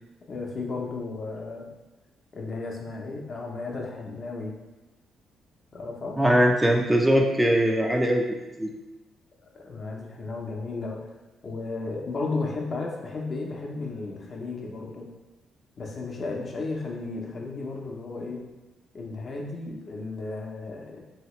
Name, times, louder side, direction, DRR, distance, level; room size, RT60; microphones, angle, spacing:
voice 1, 0.3-1.7 2.3-4.5 5.7-6.2 9.5-11.0 11.4-15.1 15.8-18.4 18.9-21.0, left 3 dB, 45° left, 0 dB, 0.6 m, -34 dB
voice 2, 6.2-8.7, equal, 10° right, 2 dB, 0.3 m, -21 dB
2.8 x 2.8 x 3.1 m, 1.1 s
cardioid pair, 90°, 0 cm